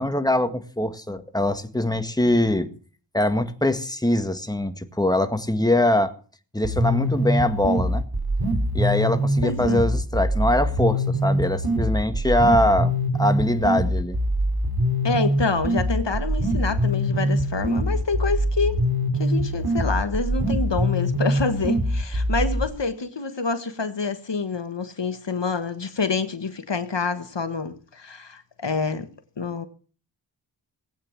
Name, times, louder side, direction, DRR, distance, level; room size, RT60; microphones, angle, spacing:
voice 1, 0.0-2.7 3.1-6.1 6.5-8.0 8.7-14.2, left 1 dB, 10° left, 1.9 m, -23 dB
sound 1, 6.6-22.6, equal, 55° right, 3.5 m, -23 dB
voice 2, 9.4-9.8 15.0-18.8 19.2-29.1 29.4-29.7, left 4 dB, 70° left, 1.4 m, -27 dB
19.0 x 8.9 x 7.1 m
wide cardioid pair, 65°, 44 cm